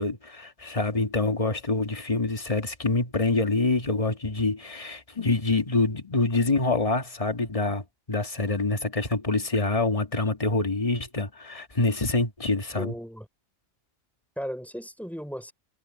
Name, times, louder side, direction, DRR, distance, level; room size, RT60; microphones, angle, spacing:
voice 1, 0.0-12.9, left 3 dB, 30° left, 1.8 m, -26 dB
voice 2, 12.7-13.3 14.4-15.5, equal, ahead, 4.1 m, -36 dB
omnidirectional pair, 1.3 m